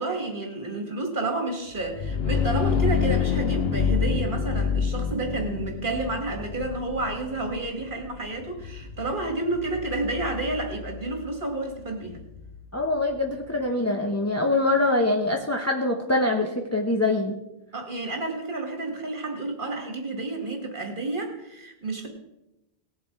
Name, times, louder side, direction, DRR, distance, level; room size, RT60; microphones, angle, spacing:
voice 1, 0.0-12.2 17.7-22.1, right 2 dB, 55° right, 3 dB, 2.3 m, -30 dB
sound 1, 1.8-13.4, left 7 dB, 75° left, 1.0 m, -29 dB
voice 2, 12.7-17.4, left 2 dB, 15° left, 1 dB, 0.9 m, -24 dB
19.0 x 7.2 x 4.7 m, 0.92 s
omnidirectional pair, 1.0 m